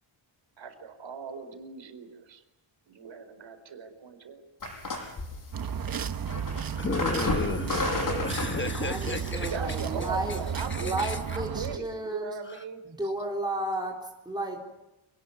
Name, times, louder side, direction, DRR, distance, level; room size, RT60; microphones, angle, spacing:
voice 1, 0.6-2.4 2.9-4.4 9.3-12.8, right 5 dB, 65° right, 7 dB, 4.5 m, -39 dB
sound 1, 4.6-10.5, left 2 dB, 40° left, 7.5 m, -34 dB
sound 2, 5.5-11.8, right 7 dB, 45° right, 1.1 m, -33 dB
voice 2, 6.8-9.5 10.7-11.2, left 4 dB, 25° left, 7 dB, 1.2 m, -32 dB
voice 3, 8.8-10.4 10.8-12.3 12.8-14.7, right 1 dB, 10° right, -2 dB, 3.9 m, -33 dB
28.5 x 19.0 x 9.5 m, 0.98 s
wide cardioid pair, 160°, 49 cm